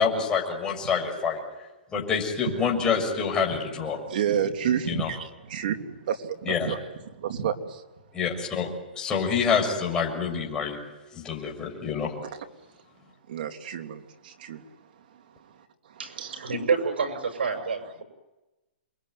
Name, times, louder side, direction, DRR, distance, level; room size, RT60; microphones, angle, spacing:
voice 1, 0.0-1.4 1.9-4.0 4.8-5.1 6.4-6.8 8.1-8.7 9.0-10.8 11.1-12.1, left 6 dB, 15° left, -1 dB, 6.7 m, -26 dB
voice 2, 4.1-5.8 6.1-6.2 6.5-6.8 7.2-7.5 13.3-14.0 14.4-14.6 16.2-16.3, right 9 dB, 55° right, 5 dB, 3.0 m, -28 dB
voice 3, 16.0-18.0, right 5 dB, 85° right, 6 dB, 6.4 m, -28 dB
28.0 x 22.5 x 9.5 m, 1.1 s
hypercardioid pair, 155°, 6 cm